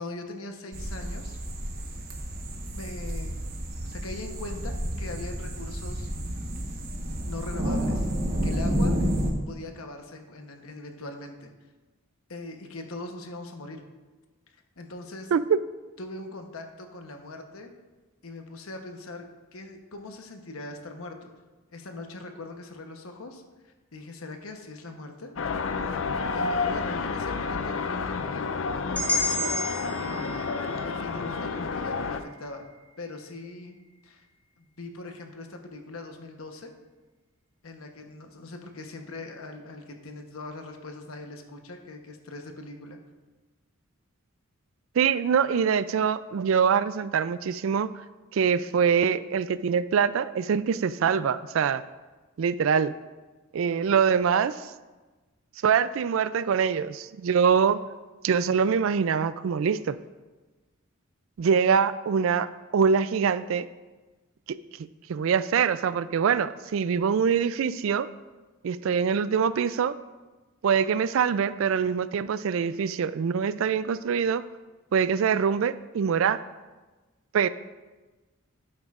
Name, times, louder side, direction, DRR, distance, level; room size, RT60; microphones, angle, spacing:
voice 1, 0.0-1.4 2.7-3.4 3.8-6.1 6.9-8.1 8.4-9.0 9.5-11.5 12.3-13.8 14.8-15.3 16.0-17.7 18.2-21.3 21.7-25.3 26.3-29.5 30.0-32.7 33.0-33.8 34.0-34.3 34.6-36.7 37.6-43.0, left 2 dB, 90° left, 4 dB, 1.0 m, -41 dB
sound 1, 0.7-9.3, equal, 45° right, 1.2 m, -30 dB
sound 2, 25.4-32.2, left 4 dB, 65° left, 0.5 m, -30 dB
sound 3, 29.0-33.0, left 1 dB, 5° left, 0.9 m, -33 dB
voice 2, 45.0-47.9 48.3-51.8 52.4-52.9 53.5-54.5 55.6-57.8 58.2-60.0 61.4-63.7 64.5-64.6 65.1-68.1 68.6-70.0 70.6-74.4 74.9-76.4 77.3-77.5, right 6 dB, 70° right, 15 dB, 0.3 m, -24 dB
12.0 x 8.7 x 2.5 m, 1.2 s
head